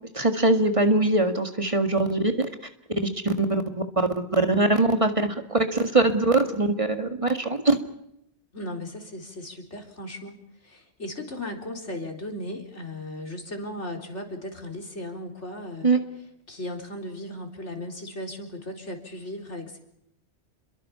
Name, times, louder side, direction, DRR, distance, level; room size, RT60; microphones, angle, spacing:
voice 1, 0.1-2.5 3.2-3.5 4.3-5.1 5.5-7.8 15.8-16.0, right 2 dB, 30° right, 6 dB, 2.1 m, -22 dB
voice 2, 8.5-15.9 16.5-19.8, left 1 dB, 90° left, 2 dB, 4.3 m, -36 dB
29.0 x 22.5 x 5.8 m, 0.78 s
omnidirectional pair, 1.2 m